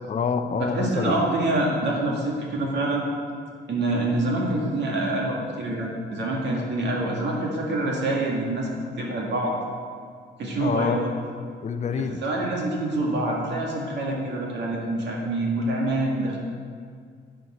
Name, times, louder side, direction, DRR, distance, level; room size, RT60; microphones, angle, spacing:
voice 1, 0.1-1.1 10.6-11.0 11.6-12.2, left 6 dB, 35° left, 8 dB, 0.6 m, -26 dB
voice 2, 0.6-3.0 3.7-8.7 9.0-9.5 10.4-11.1 12.2-16.4, right 2 dB, 60° right, -2 dB, 1.9 m, -26 dB
10.5 x 9.1 x 4.4 m, 2.1 s
cardioid pair, 90°, 20 cm